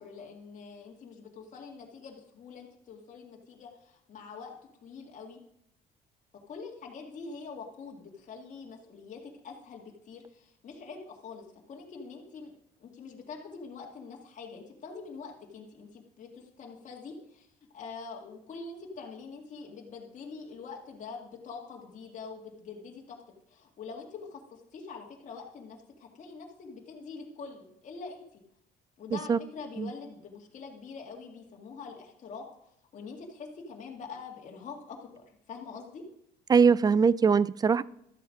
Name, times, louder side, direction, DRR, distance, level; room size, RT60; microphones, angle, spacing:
voice 1, 0.0-4.5 4.8-5.4 6.5-12.5 12.8-17.5 17.7-23.2 23.5-28.4 29.0-36.0, left 5 dB, 45° left, -1 dB, 2.1 m, -45 dB
voice 2, 36.5-37.8, right 5 dB, 25° right, 20 dB, 0.4 m, -21 dB
13.0 x 7.7 x 5.2 m, 0.76 s
cardioid pair, 110°, 17 cm